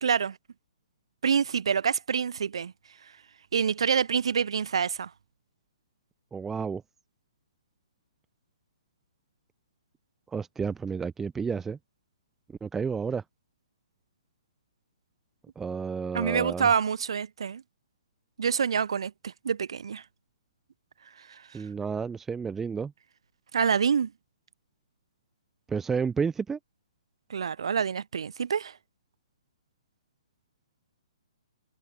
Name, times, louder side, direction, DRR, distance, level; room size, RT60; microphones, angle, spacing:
voice 1, 0.0-0.4 1.2-2.7 3.5-5.1 16.1-17.6 18.4-20.0 23.5-24.1 27.3-28.7, right 7 dB, 55° right, 0.9 m, -26 dB
voice 2, 6.3-6.8 10.3-11.8 12.6-13.2 15.6-16.7 21.5-22.9 25.7-26.6, right 5 dB, 10° right, 0.7 m, -31 dB
figure-of-eight pair, 125°, 3 cm